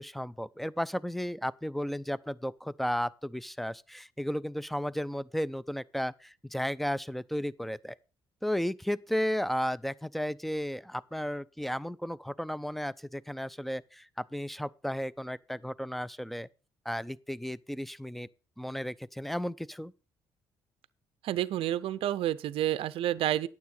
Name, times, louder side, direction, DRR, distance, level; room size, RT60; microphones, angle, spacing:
voice 1, 0.0-8.0 8.4-16.5 16.9-18.3 18.6-19.9, equal, ahead, 0.5 m, -34 dB
voice 2, 21.2-23.5, right 12 dB, 70° right, 0.5 m, -29 dB
9.4 x 7.1 x 5.5 m
supercardioid pair, 60°, 10 cm